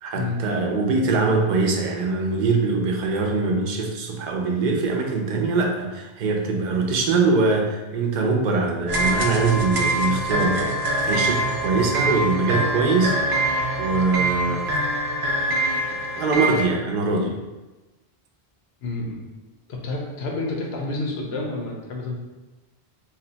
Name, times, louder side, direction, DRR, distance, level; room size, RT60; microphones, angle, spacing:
voice 1, 0.0-13.5 13.8-14.7 16.1-17.4, right 3 dB, 55° right, 1 dB, 0.6 m, -23 dB
sound 1, 8.9-16.6, right 1 dB, 85° right, 0.8 m, -24 dB
voice 2, 18.8-19.2 19.7-22.1, left 2 dB, 90° left, 0 dB, 0.9 m, -29 dB
2.7 x 2.1 x 3.8 m, 1.1 s
omnidirectional pair, 1.0 m